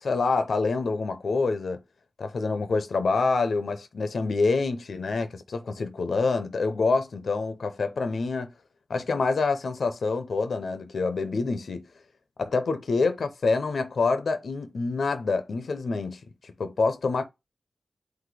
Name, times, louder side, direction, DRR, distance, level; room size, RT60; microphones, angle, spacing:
voice 1, 0.0-1.8 2.2-8.5 8.9-11.8 12.4-17.2, left 4 dB, 75° left, 0.7 m, -26 dB
4.1 x 2.6 x 4.7 m
wide cardioid pair, 75°, 0 cm